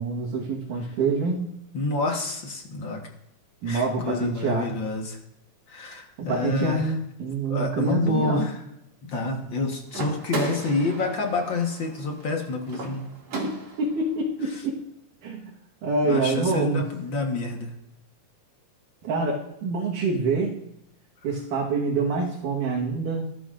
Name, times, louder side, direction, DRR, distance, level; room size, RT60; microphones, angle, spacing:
voice 1, 0.0-1.6 3.6-4.7 6.2-8.5 13.4-14.8 15.2-15.5 15.8-16.8 19.0-20.6 21.2-23.2, right 3 dB, 85° right, -3 dB, 3.0 m, -26 dB
voice 2, 1.7-3.0 3.7-5.2 5.7-6.9 7.5-8.6 9.0-13.1 14.5-14.6 16.0-17.7, left 2 dB, 50° left, 2 dB, 1.6 m, -28 dB
sound 1, 9.9-14.0, right 3 dB, 60° right, 3.5 m, -35 dB
20.5 x 13.0 x 2.5 m, 0.81 s
omnidirectional pair, 3.5 m